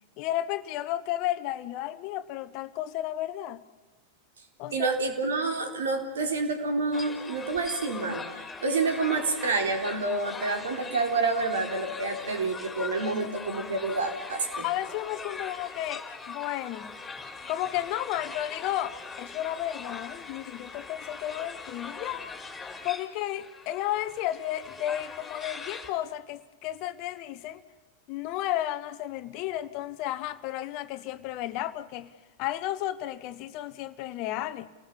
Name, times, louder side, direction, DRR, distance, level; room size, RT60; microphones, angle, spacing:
voice 1, 0.2-3.6 4.6-4.9 13.1-13.3 14.6-17.0 17.5-22.3 22.8-27.6 28.1-32.1 32.4-34.7, left 13 dB, 45° left, 1.1 m, -33 dB
voice 2, 4.7-8.2 8.6-14.7, right 3 dB, 65° right, 3.9 m, -28 dB
sound 1, 6.9-25.9, left 4 dB, 15° left, 3.5 m, -41 dB
29.5 x 19.0 x 7.2 m
figure-of-eight pair, 90°, 0 cm